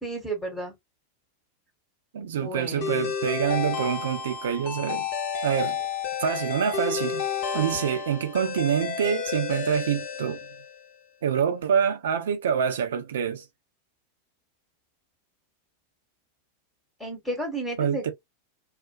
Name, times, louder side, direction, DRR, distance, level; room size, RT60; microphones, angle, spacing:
voice 1, 0.0-0.7 2.2-3.1 7.5-7.8 17.0-18.1, right 1 dB, 5° left, 1.1 m, -33 dB
voice 2, 2.1-5.1 5.4-5.8 6.2-7.2 7.5-10.4 11.2-13.4 17.8-18.1, right 8 dB, 60° right, 0.6 m, -26 dB
sound 1, 2.8-10.9, left 6 dB, 50° left, 0.7 m, -31 dB
2.4 x 2.2 x 2.5 m
figure-of-eight pair, 90°, 0 cm